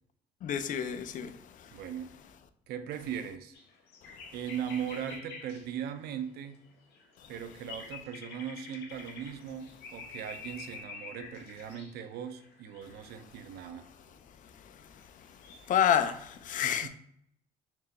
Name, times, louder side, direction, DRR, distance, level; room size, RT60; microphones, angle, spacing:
voice 1, 0.4-1.7 15.7-16.9, left 9 dB, 50° left, 0.4 m, -29 dB
voice 2, 1.7-2.1 2.7-3.6 4.3-6.6 7.3-13.9 16.6-16.9, right 8 dB, 70° right, 0.5 m, -39 dB
sound 1, 3.5-5.8 6.4-13.1 13.9-14.0 15.0-16.1, left 4 dB, 80° left, 0.8 m, -48 dB
4.4 x 2.1 x 4.0 m
cardioid pair, 110°, 17 cm